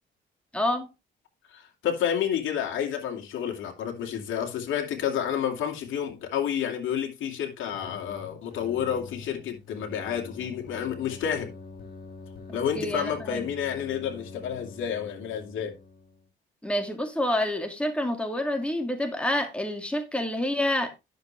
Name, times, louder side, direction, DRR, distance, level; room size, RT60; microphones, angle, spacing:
voice 1, 0.5-0.9 12.5-13.5 16.6-20.9, left 1 dB, 5° left, 2.3 m, -28 dB
voice 2, 1.5-11.5 12.5-15.7, left 9 dB, 80° left, 2.6 m, -30 dB
sound 1, 7.7-16.3, left 3 dB, 50° left, 5.3 m, -45 dB
10.5 x 6.8 x 3.4 m
cardioid pair, 90°, 20 cm